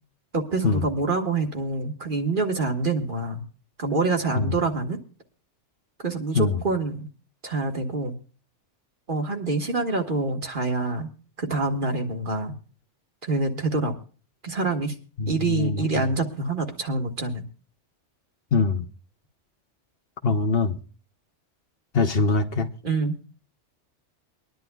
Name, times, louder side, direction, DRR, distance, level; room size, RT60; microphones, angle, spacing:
voice 1, 0.3-3.4 3.8-5.0 6.0-7.1 7.4-8.1 9.1-11.1 11.4-12.5 13.2-14.0 14.4-14.9 15.3-17.4 22.8-23.2, right 3 dB, 45° right, 1.6 m, -26 dB
voice 2, 15.2-16.1 18.5-18.8 20.2-20.8 21.9-22.7, left 4 dB, 55° left, 1.0 m, -23 dB
24.0 x 11.0 x 2.3 m
omnidirectional pair, 1.2 m